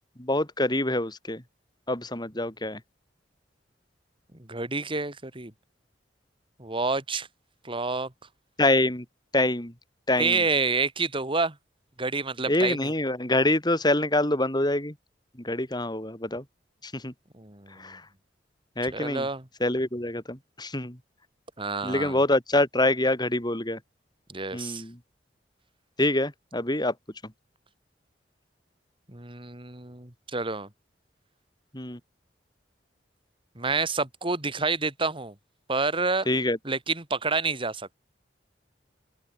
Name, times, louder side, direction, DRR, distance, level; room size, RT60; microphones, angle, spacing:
voice 1, 0.2-1.4 1.9-2.8 8.6-9.0 9.3-9.7 10.1-10.4 12.5-14.9 15.4-16.4 16.8-17.1 17.8-18.0 18.8-19.3 19.6-21.0 21.8-23.8 24.5-25.0 26.0-26.9 31.7-32.0 36.3-36.6, left 1 dB, 25° left, 6.4 m, -25 dB
voice 2, 4.5-5.5 6.6-7.3 7.6-8.1 10.2-11.5 12.0-12.9 17.4-17.8 18.9-19.4 21.6-22.2 24.3-24.8 29.1-30.7 33.6-35.3 35.7-36.3 36.6-37.9, right 3 dB, 30° right, 3.1 m, -28 dB
open air
head